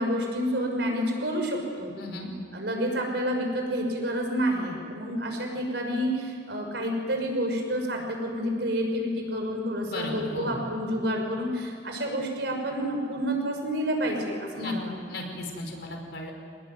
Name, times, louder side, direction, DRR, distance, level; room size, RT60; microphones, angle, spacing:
voice 1, 0.0-1.9 2.5-14.9, equal, 65° right, 2 dB, 6.2 m, -29 dB
voice 2, 2.0-2.3 9.9-10.6 14.6-14.7 15.1-16.3, left 1 dB, 65° left, 2 dB, 5.3 m, -36 dB
26.0 x 20.0 x 9.5 m, 2.3 s
head